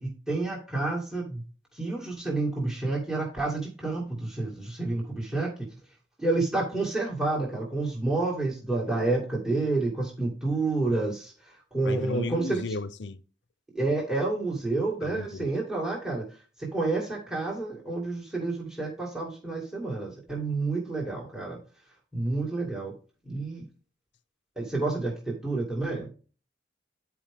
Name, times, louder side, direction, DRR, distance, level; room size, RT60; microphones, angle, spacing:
voice 1, 0.0-1.4 1.7-5.5 6.2-12.6 13.7-16.2 16.6-21.6 22.1-22.9 23.3-23.7 24.6-26.1, right 2 dB, 5° right, 2.0 m, -29 dB
voice 2, 11.8-13.2 15.0-15.6, left 3 dB, 70° left, 0.6 m, -34 dB
9.8 x 4.8 x 3.6 m
head